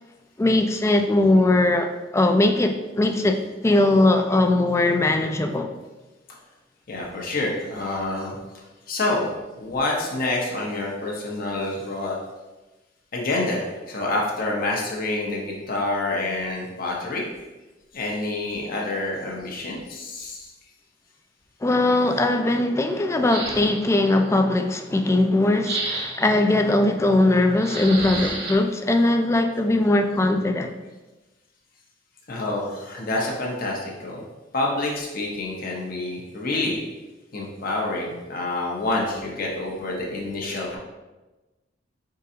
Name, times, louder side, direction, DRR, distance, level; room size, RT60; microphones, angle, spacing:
voice 1, 0.4-5.7 21.6-30.7, left 2 dB, 15° left, 6 dB, 0.3 m, -20 dB
voice 2, 6.9-12.2 13.1-17.2 17.9-20.5 32.3-34.2 34.5-36.8 37.3-40.8, left 2 dB, 50° left, -2 dB, 0.8 m, -27 dB
sound 1, 23.3-24.0 25.6-26.4 27.6-28.5, right 2 dB, 60° right, 0.9 m, -30 dB
5.1 x 3.8 x 2.8 m, 1.1 s
head